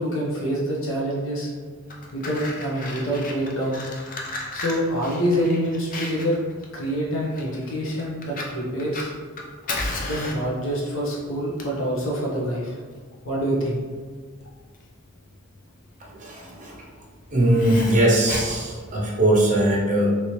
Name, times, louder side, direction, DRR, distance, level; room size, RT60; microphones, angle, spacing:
voice 1, 0.0-1.5 2.1-3.8 4.5-6.4 6.7-9.1 10.0-12.8 13.2-13.8, equal, 70° left, -4 dB, 0.9 m, -26 dB
Fire, 1.7-19.4, left 2 dB, 40° left, 0.5 m, -36 dB
voice 2, 16.1-16.7 17.3-20.1, right 1 dB, 40° right, -2 dB, 0.6 m, -20 dB
3.1 x 2.8 x 3.1 m, 1.5 s
head